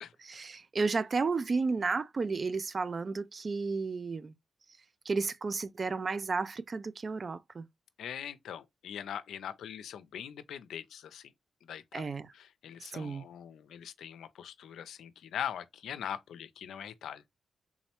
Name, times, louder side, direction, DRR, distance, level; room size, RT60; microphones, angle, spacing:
voice 1, 0.2-4.3 5.1-7.7 11.9-12.3 12.9-13.3, right 4 dB, 45° right, 0.3 m, -32 dB
voice 2, 8.0-11.3 11.6-12.1 12.3-17.2, left 9 dB, 85° left, 0.4 m, -42 dB
3.6 x 3.0 x 2.9 m
cardioid pair, 65°, 0 cm